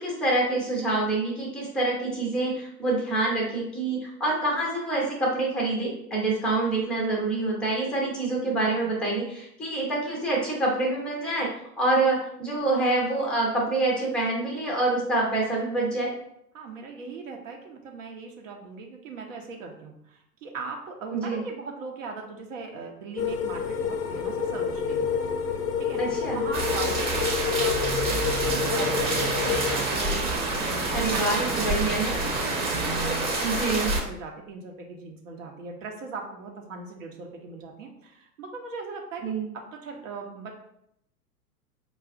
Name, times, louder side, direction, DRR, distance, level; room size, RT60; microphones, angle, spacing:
voice 1, 0.0-11.5 11.8-16.1 21.1-21.4 26.0-26.4 30.9-32.2 33.4-33.9 39.2-39.4, right 2 dB, ahead, -3 dB, 0.5 m, -26 dB
voice 2, 8.4-8.9 16.5-26.0 26.3-31.0 32.2-40.5, right 4 dB, 55° right, 2 dB, 0.7 m, -40 dB
sound 1, 23.2-29.8, left 7 dB, 80° left, 0.5 m, -28 dB
sound 2, 26.5-34.0, right 2 dB, 20° right, 0.9 m, -27 dB
sound 3, 28.4-33.5, right 4 dB, 90° right, 0.6 m, -35 dB
4.9 x 2.4 x 2.4 m, 0.76 s
figure-of-eight pair, 105°, 47 cm